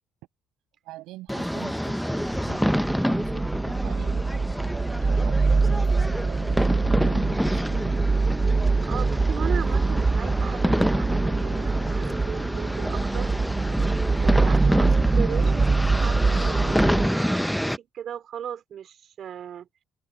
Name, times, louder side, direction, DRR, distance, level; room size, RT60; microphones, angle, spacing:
voice 1, 0.8-4.3 5.0-8.1 14.7-14.8, right 18 dB, 85° right, 6.3 m, -43 dB
sound 1, 1.3-17.8, equal, ahead, 0.7 m, -27 dB
sound 2, 2.3-17.1, right 4 dB, 25° right, 0.3 m, -24 dB
voice 2, 8.8-13.3 14.2-19.7, right 9 dB, 60° right, 4.5 m, -37 dB
cardioid pair, 85°, 0 cm